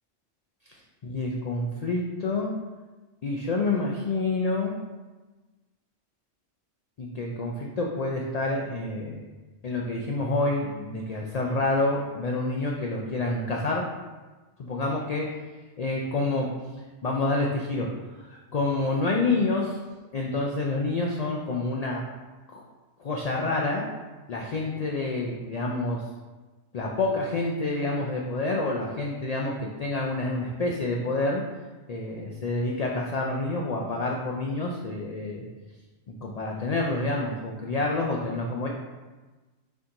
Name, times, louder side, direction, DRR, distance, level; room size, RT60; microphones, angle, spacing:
voice 1, 0.7-2.5 3.2-4.8 7.0-9.3 9.6-13.9 14.6-15.2 15.8-16.5 17.0-17.9 18.2-19.8 20.1-22.0 22.5-22.6 23.0-23.8 24.3-26.0 26.7-31.4 31.9-35.4 36.2-38.7, left 2 dB, 65° left, -1 dB, 0.4 m, -28 dB
4.2 x 2.9 x 3.8 m, 1.2 s
omnidirectional pair, 1.2 m